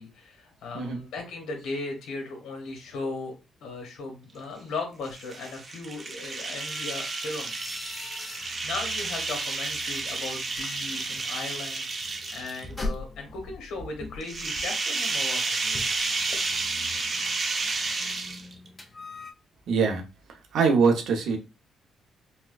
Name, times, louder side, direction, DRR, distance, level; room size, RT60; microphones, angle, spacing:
voice 1, 0.0-3.3 3.6-7.5 7.8-15.6, left 3 dB, 85° left, 1.4 m, -37 dB
sound 1, 5.0-12.8 14.2-18.7, right 3 dB, 40° right, 0.7 m, -31 dB
sound 2, 6.6-19.3, left 2 dB, 20° left, 0.6 m, -42 dB
voice 2, 19.7-20.0 20.5-21.4, right 5 dB, 70° right, 0.8 m, -22 dB
4.2 x 2.3 x 2.4 m
cardioid pair, 90°, 0 cm